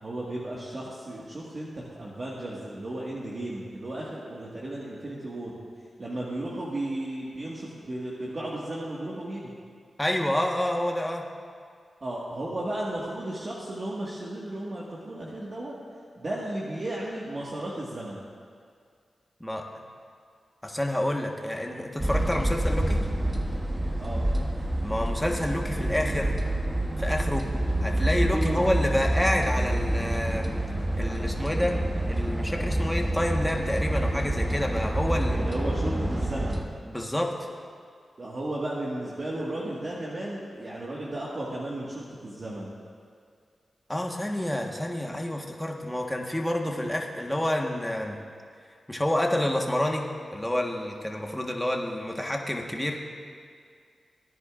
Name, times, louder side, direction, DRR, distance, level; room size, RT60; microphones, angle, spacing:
voice 1, 0.0-5.6 6.0-9.5 12.0-15.7 16.2-18.2 24.0-24.3 28.3-28.7 35.3-36.6 38.2-42.7, right 1 dB, 50° right, -6 dB, 1.7 m, -34 dB
voice 2, 10.0-11.3 19.4-19.7 20.6-23.0 24.8-26.3 27.0-27.5 27.8-30.6 31.0-31.8 32.1-35.5 36.9-37.5 43.9-48.2 48.9-53.0, left 1 dB, 10° left, 1 dB, 1.4 m, -28 dB
sound 1, 22.0-36.6, right 1 dB, 25° right, 1.2 m, -27 dB
17.5 x 10.0 x 2.5 m, 2.1 s
cardioid pair, 50°, 0 cm